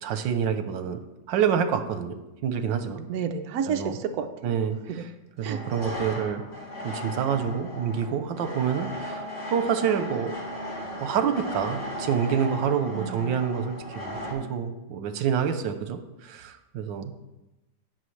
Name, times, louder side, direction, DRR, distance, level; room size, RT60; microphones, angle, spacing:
voice 1, 0.0-1.0 1.3-3.0 3.7-4.0 4.4-6.4 6.8-10.4 11.0-17.1, right 7 dB, 85° right, 9 dB, 1.5 m, -27 dB
voice 2, 3.1-4.3 4.9-5.0 5.4-5.6 12.9-13.3, right 7 dB, 65° right, 6 dB, 1.1 m, -30 dB
sound 1, 3.4-3.6 5.4-14.3, equal, 30° left, 2.5 m, -36 dB
17.0 x 6.1 x 3.2 m, 0.99 s
omnidirectional pair, 2.0 m